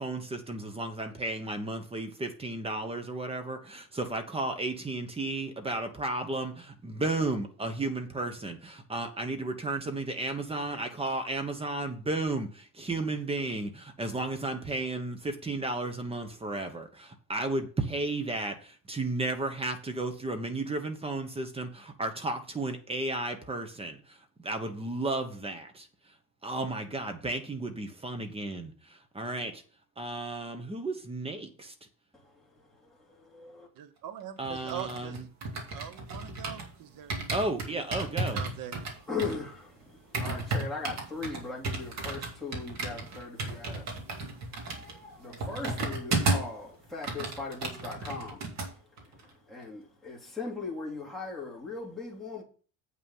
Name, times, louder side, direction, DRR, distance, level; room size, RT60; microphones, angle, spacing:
voice 1, 0.0-24.0 24.4-25.9 26.4-28.7 29.1-29.6 30.0-31.7 34.4-35.2 37.3-38.4, right 2 dB, 15° right, 1.1 m, -33 dB
voice 2, 32.8-33.7 39.1-44.0 44.6-48.5 49.0-52.4, left 4 dB, ahead, 3.0 m, -39 dB
voice 3, 33.8-35.2 35.7-37.5 38.0-38.8, right 10 dB, 65° right, 1.1 m, -42 dB
sound 1, 34.4-36.7 37.1-46.6 46.9-48.7 49.0-49.2, right 2 dB, 50° right, 2.3 m, -34 dB
8.1 x 5.7 x 5.5 m
cardioid pair, 170°, 36 cm